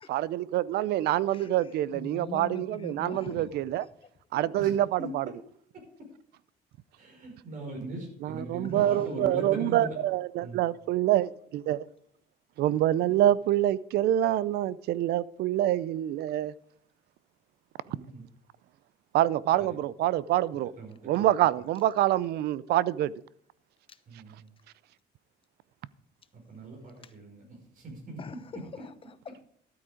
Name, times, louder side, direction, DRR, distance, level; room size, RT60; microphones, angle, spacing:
voice 1, 0.1-3.9 4.3-5.3 8.2-11.8 12.6-16.5 19.1-20.7 21.1-23.1, right 13 dB, 75° right, 0.5 m, -26 dB
voice 2, 1.9-3.5 8.6-9.0 23.9-24.0 27.0-27.1 28.2-29.5, left 6 dB, 30° left, 0.9 m, -43 dB
voice 3, 7.2-8.0 8.2-9.9 10.4-10.6 17.8-18.3 19.6-19.7 20.8-21.3 24.1-24.5 26.3-28.2, right 2 dB, 55° right, 5.2 m, -40 dB
12.5 x 8.7 x 5.0 m
cardioid pair, 110°, 17 cm